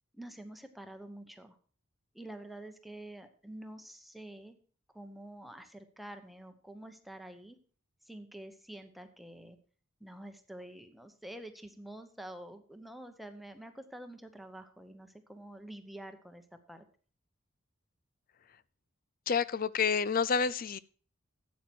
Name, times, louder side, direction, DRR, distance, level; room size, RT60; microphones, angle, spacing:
voice 1, 0.1-1.6 2.1-4.6 4.9-7.6 8.0-9.6 10.0-16.8, right 1 dB, ahead, 7 dB, 0.9 m, -48 dB
voice 2, 19.3-20.8, left 6 dB, 45° left, 18 dB, 0.4 m, -29 dB
12.0 x 8.4 x 4.5 m, 0.42 s
head